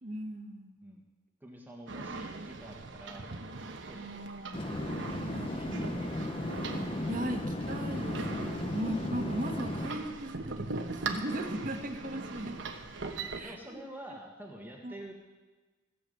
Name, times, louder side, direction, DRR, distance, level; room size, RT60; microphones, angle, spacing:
voice 1, 0.0-0.8 3.9-4.7 5.3-6.3 7.1-12.7 13.4-13.8 14.8-14.9, right 1 dB, 45° right, 5 dB, 1.4 m, -38 dB
voice 2, 1.4-3.2 3.9-4.2 5.3-6.5 8.4-8.6 13.0-13.2 13.4-15.1, right 1 dB, 10° right, 0 dB, 1.5 m, -48 dB
sound 1, 1.9-13.4, right 3 dB, 75° right, 1.2 m, -40 dB
sound 2, 4.5-9.9, left 1 dB, 30° left, 0.8 m, -35 dB
16.5 x 7.0 x 8.1 m, 1.3 s
head